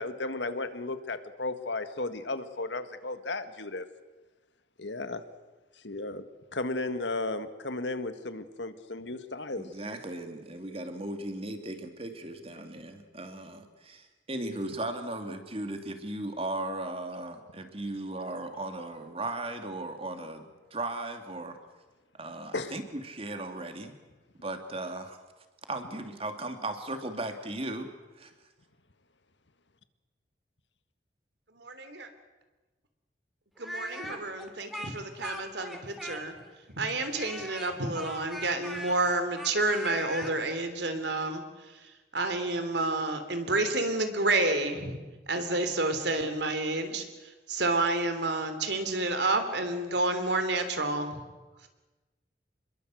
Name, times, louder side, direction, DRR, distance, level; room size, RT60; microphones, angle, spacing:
voice 1, 0.0-3.9 4.8-5.2 5.8-6.2 6.5-9.7 22.5-22.8, left 2 dB, 80° left, 10 dB, 1.8 m, -34 dB
voice 2, 9.6-20.4 20.7-21.6 22.2-23.9 24.4-25.2 25.7-27.9 28.2-28.3, right 2 dB, 30° right, 6 dB, 2.7 m, -37 dB
voice 3, 31.5-32.1 33.6-36.4 36.8-41.4 41.7-45.0 45.3-47.0 47.5-51.2, right 2 dB, 70° right, 8 dB, 3.2 m, -29 dB
Speech, 33.6-36.5 37.1-40.3, equal, ahead, 3.0 m, -40 dB
27.5 x 22.0 x 7.8 m, 1.2 s
head